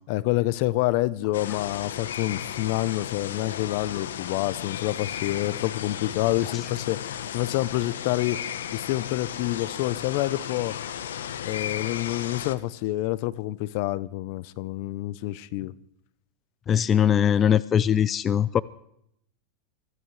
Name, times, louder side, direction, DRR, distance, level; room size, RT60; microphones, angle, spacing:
voice 1, 0.1-10.8 11.4-15.7, left 17 dB, 60° left, 0.8 m, -28 dB
sound 1, 1.3-12.5, left 9 dB, 90° left, 1.1 m, -34 dB
voice 2, 16.7-18.6, left 9 dB, 30° left, 0.5 m, -21 dB
24.5 x 15.5 x 3.3 m
hypercardioid pair, 115°, 0 cm